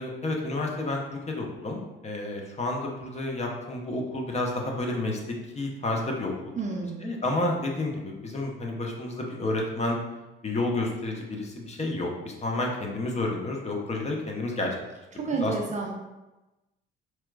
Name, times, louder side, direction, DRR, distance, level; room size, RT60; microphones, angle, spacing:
voice 1, 0.0-5.2 5.5-6.5 7.0-10.0 10.4-14.7 15.3-15.5, left 2 dB, 20° left, 0 dB, 0.7 m, -30 dB
voice 2, 6.6-7.0 15.1-15.9, right 4 dB, 25° right, -1 dB, 0.6 m, -30 dB
4.4 x 2.1 x 2.4 m, 1.0 s
figure-of-eight pair, 55°, 30 cm